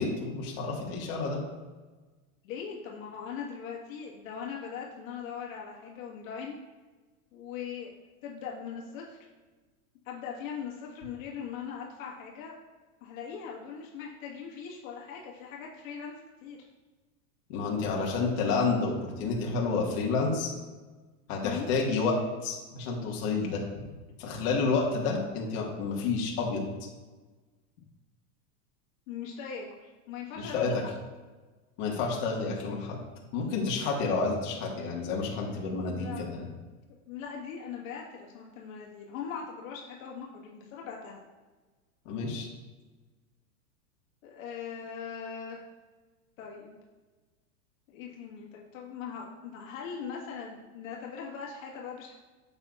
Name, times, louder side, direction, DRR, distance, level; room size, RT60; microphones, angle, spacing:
voice 1, 0.0-1.4 17.5-20.5 21.3-23.6 24.2-26.6 30.4-30.7 31.8-33.0 33.3-36.4 42.1-42.5, left 4 dB, 45° left, -2 dB, 1.7 m, -30 dB
voice 2, 2.4-6.6 7.3-7.9 8.2-9.2 10.1-12.5 13.0-16.1 16.4-16.6 21.4-21.7 29.1-30.9 35.8-36.5 37.1-41.2 44.2-45.6 46.4-46.8 47.9-52.1, left 7 dB, 60° left, -2 dB, 1.7 m, -40 dB
8.7 x 6.9 x 2.4 m, 1.3 s
supercardioid pair, 135°, 44 cm